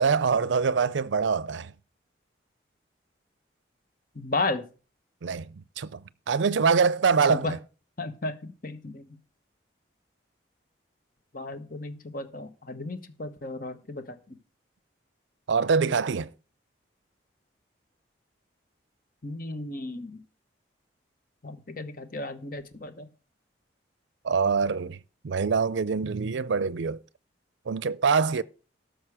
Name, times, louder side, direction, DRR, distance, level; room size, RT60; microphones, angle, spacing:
voice 1, 0.0-1.7 5.2-5.5 5.8-7.6 15.5-16.3 24.2-25.0 25.2-27.0 27.7-28.4, right 5 dB, 75° right, 0.5 m, -24 dB
voice 2, 4.1-4.7 7.3-7.5 8.0-9.0 11.3-14.4 19.2-20.2 21.4-23.1, left 2 dB, 45° left, 1.1 m, -34 dB
12.5 x 6.4 x 4.8 m
head